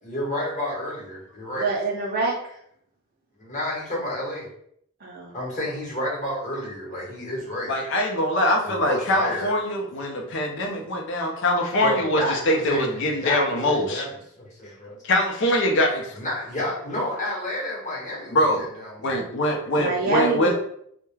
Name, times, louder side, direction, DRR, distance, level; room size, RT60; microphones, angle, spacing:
voice 1, 0.0-1.7 3.4-4.5 5.3-7.7 8.6-9.5 10.1-10.2 11.8-15.0 16.1-19.1, left 1 dB, 35° left, -4 dB, 0.9 m, -30 dB
voice 2, 1.6-2.3 5.0-5.4 19.8-20.5, right 3 dB, 40° right, -2 dB, 0.5 m, -25 dB
voice 3, 7.7-14.0 15.0-16.1 18.3-18.7 19.0-20.5, left 1 dB, 55° left, 1 dB, 0.5 m, -23 dB
2.3 x 2.1 x 3.1 m, 0.69 s
head